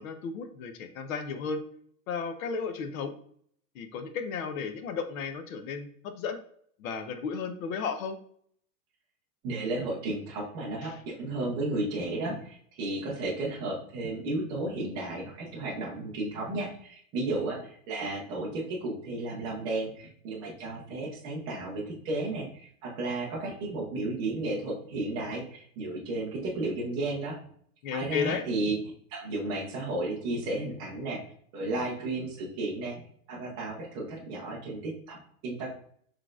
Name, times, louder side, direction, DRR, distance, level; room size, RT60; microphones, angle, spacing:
voice 1, 0.0-1.6 2.1-3.1 3.7-6.4 6.8-8.2 10.8-11.0 27.8-28.4, left 5 dB, 80° left, 8 dB, 0.8 m, -34 dB
voice 2, 9.4-27.4 27.9-28.8 29.1-33.0 33.3-35.7, right 2 dB, 10° right, -4 dB, 0.3 m, -33 dB
6.0 x 3.2 x 2.4 m, 0.63 s
supercardioid pair, 175°, 41 cm